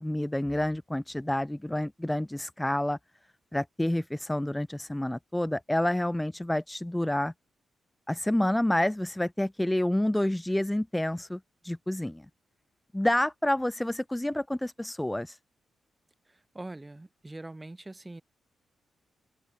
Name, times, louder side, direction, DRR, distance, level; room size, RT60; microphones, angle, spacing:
voice 1, 0.0-3.0 3.5-7.3 8.1-12.3 12.9-15.4, left 1 dB, 10° left, 0.5 m, -28 dB
voice 2, 16.3-18.2, right 2 dB, 15° right, 6.3 m, -43 dB
open air
cardioid pair, 85°, 0 cm